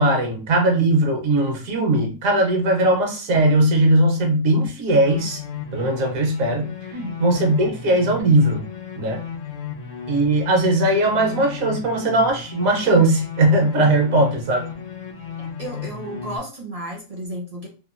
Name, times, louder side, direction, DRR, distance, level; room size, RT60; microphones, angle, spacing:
voice 1, 0.0-5.4 5.7-6.7 7.2-8.6 9.0-9.2 10.1-14.7, right 1 dB, 75° right, 2 dB, 1.2 m, -19 dB
sound 1, 5.0-16.4, left 7 dB, 65° left, 0.9 m, -34 dB
voice 2, 15.4-17.7, right 1 dB, 45° right, -1 dB, 0.5 m, -33 dB
2.9 x 2.2 x 2.5 m, 0.35 s
omnidirectional pair, 1.5 m